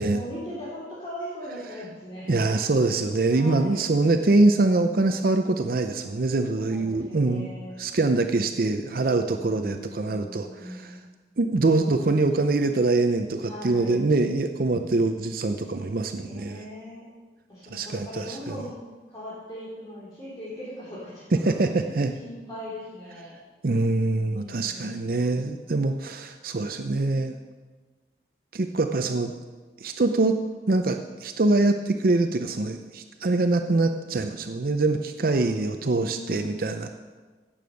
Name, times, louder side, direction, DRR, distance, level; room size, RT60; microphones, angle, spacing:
voice 1, 0.1-2.5 3.3-3.9 6.5-7.7 9.2-11.0 13.4-14.0 16.1-17.0 17.5-18.8 19.1-21.5 21.9-23.3 24.3-25.2 35.3-35.6 36.0-36.9, left 1 dB, 25° left, -9 dB, 3.3 m, -40 dB
voice 2, 2.3-7.5 7.8-11.0 11.4-16.6 17.7-18.6 21.4-22.1 23.6-27.3 28.5-29.3 29.8-30.4 30.7-36.9, right 2 dB, 55° right, 7 dB, 0.6 m, -24 dB
16.0 x 7.0 x 6.3 m, 1.4 s
head